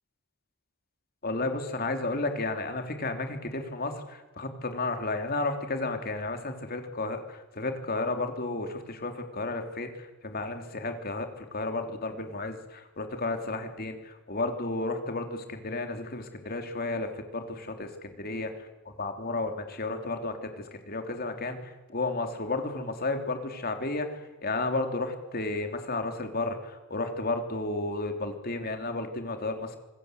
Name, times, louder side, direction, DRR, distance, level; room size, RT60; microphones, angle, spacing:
voice 1, 1.2-29.8, left 2 dB, 45° left, 5 dB, 3.2 m, -33 dB
26.0 x 20.5 x 8.2 m, 1.1 s
head